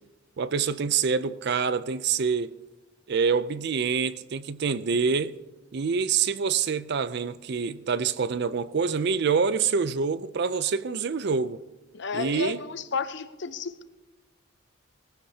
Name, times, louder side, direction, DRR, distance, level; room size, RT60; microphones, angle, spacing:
voice 1, 0.4-2.5 3.1-5.4 5.7-11.6 12.1-12.6, right 5 dB, 55° right, 0.4 m, -26 dB
voice 2, 11.9-13.8, left 4 dB, 55° left, 0.7 m, -32 dB
19.5 x 15.0 x 2.8 m
head